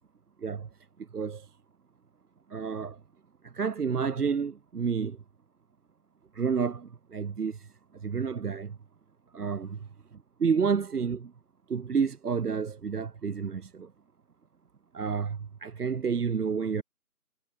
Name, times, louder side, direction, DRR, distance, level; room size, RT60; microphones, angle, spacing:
voice 1, 0.4-0.7 1.1-1.5 2.5-3.0 3.4-5.2 6.3-7.7 7.9-8.8 9.3-9.8 10.4-11.3 11.7-13.9 14.9-16.8, right 6 dB, 75° right, 0.8 m, -30 dB
figure-of-eight pair, 175°, 47 cm